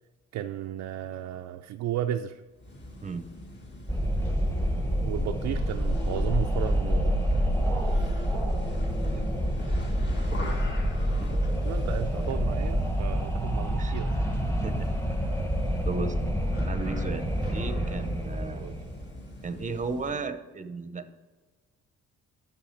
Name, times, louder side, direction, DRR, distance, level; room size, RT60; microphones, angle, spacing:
voice 1, 0.3-2.4 5.0-7.2 10.3-10.4 11.6-14.3 17.7-17.8 18.6-18.8, right 11 dB, 70° right, 5 dB, 0.5 m, -34 dB
sound 1, 2.5-20.3, left 1 dB, 35° left, 1.8 m, -42 dB
Wind, 3.9-19.2, equal, 10° left, 1.2 m, -27 dB
voice 2, 11.1-11.5 13.8-13.9 14.5-14.9 15.9-16.2 16.6-18.7 19.4-21.1, right 4 dB, 25° right, 11 dB, 0.7 m, -35 dB
9.0 x 5.9 x 4.5 m, 1.3 s
cardioid pair, 90°, 30 cm